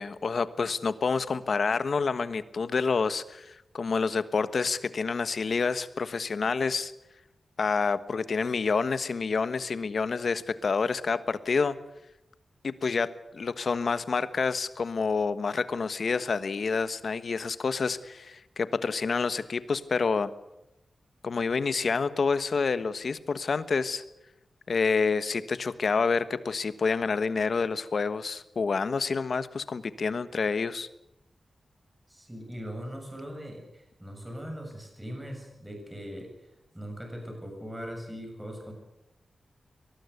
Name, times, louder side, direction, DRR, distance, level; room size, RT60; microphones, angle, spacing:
voice 1, 0.0-6.9 7.6-11.8 12.6-20.3 21.2-24.0 24.7-30.9, left 4 dB, 55° left, 13 dB, 1.3 m, -28 dB
voice 2, 32.1-36.3 36.7-38.7, equal, 10° right, 2 dB, 7.4 m, -40 dB
23.5 x 20.0 x 8.1 m, 0.85 s
wide cardioid pair, 160°, 0 cm